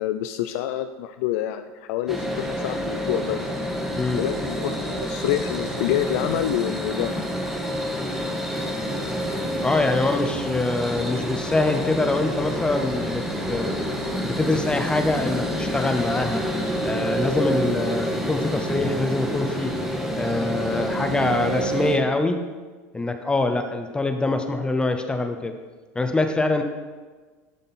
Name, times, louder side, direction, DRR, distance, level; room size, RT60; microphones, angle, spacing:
voice 1, 0.0-3.5 4.2-4.7 5.0-7.3 7.7-8.0, left 12 dB, 70° left, 8 dB, 0.3 m, -27 dB
sound 1, 2.1-22.0, equal, 5° right, 1.1 m, -28 dB
voice 2, 9.6-13.2 13.5-13.8 14.2-16.4 16.8-19.7 20.2-22.4 22.9-25.6 26.0-26.6, left 2 dB, 10° left, 6 dB, 0.6 m, -24 dB
11.0 x 3.7 x 4.1 m, 1.4 s
supercardioid pair, 110°, 8 cm